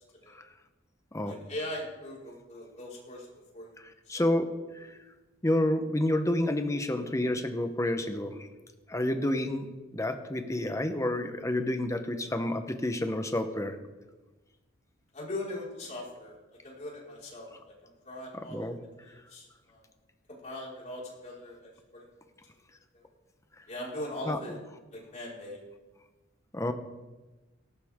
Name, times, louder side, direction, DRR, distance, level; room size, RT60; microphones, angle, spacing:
voice 1, 1.2-3.3 3.5-3.7 4.1-4.3 15.1-16.3 16.6-17.5 18.0-18.7 19.0-19.8 20.4-22.0 22.9-23.1 23.7-24.6 24.9-25.6, left 1 dB, 40° left, -4 dB, 5.1 m, -40 dB
voice 2, 4.1-4.5 4.8-4.9 5.4-8.3 8.9-13.7 18.5-18.8 24.3-24.4 26.5-26.7, left 1 dB, 15° left, 7 dB, 1.0 m, -29 dB
18.0 x 14.5 x 3.7 m, 1.2 s
head